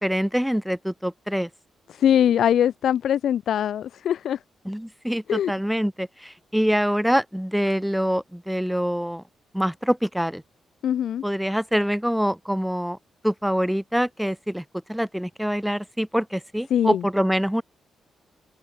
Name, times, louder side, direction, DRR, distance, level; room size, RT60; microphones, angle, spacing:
voice 1, 0.0-1.5 4.7-9.2 9.5-10.4 11.2-13.0 13.2-17.6, equal, ahead, 0.5 m, -25 dB
voice 2, 1.9-4.4 5.3-5.5 10.8-11.2 16.7-17.0, left 9 dB, 75° left, 1.1 m, -22 dB
cardioid pair, 100°, 0 cm